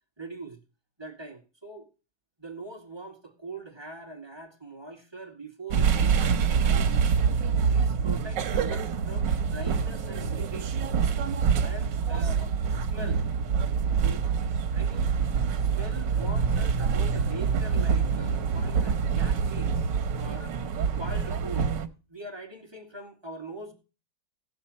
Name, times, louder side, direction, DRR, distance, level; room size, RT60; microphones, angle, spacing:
voice 1, 0.2-0.6 1.0-1.9 2.4-7.0 7.7-10.9 11.6-13.2 14.0-14.2 14.7-15.1 15.6-19.9 20.2-20.6 21.0-23.7, right 2 dB, 15° right, 1.9 m, -42 dB
sound 1, 5.7-21.9, right 6 dB, 85° right, 1.7 m, -26 dB
17.5 x 6.7 x 4.2 m
omnidirectional pair, 1.9 m